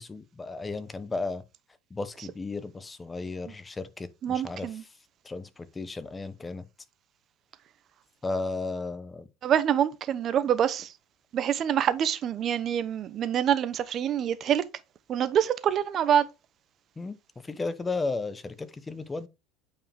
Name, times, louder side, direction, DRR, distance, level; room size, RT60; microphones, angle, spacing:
voice 1, 0.0-1.4 1.9-4.7 5.2-6.6 8.2-9.3 17.0-17.2 17.4-19.3, left 3 dB, 15° left, 0.9 m, -34 dB
voice 2, 4.2-4.8 9.4-10.9 11.3-14.6 15.1-16.3, right 9 dB, 40° right, 0.8 m, -26 dB
8.7 x 4.8 x 3.5 m
supercardioid pair, 125°, 0 cm